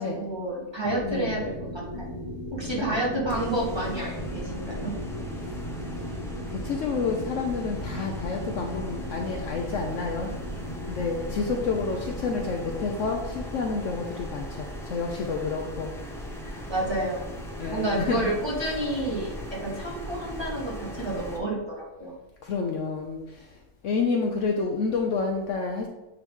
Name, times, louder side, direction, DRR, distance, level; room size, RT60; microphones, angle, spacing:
voice 1, 0.0-2.1 2.5-4.9 16.4-17.4 17.7-22.1, right 1 dB, 20° right, -5 dB, 1.3 m, -30 dB
sound 1, 0.8-14.1, equal, 25° left, 0.9 m, -38 dB
voice 2, 1.0-1.4 6.6-10.3 10.9-15.9 17.6-18.3 22.4-23.2 23.8-25.9, left 4 dB, 65° left, 2 dB, 0.9 m, -29 dB
sound 2, 3.3-21.4, equal, 5° left, 0.4 m, -38 dB
8.9 x 3.0 x 3.6 m, 1.0 s
omnidirectional pair, 1.6 m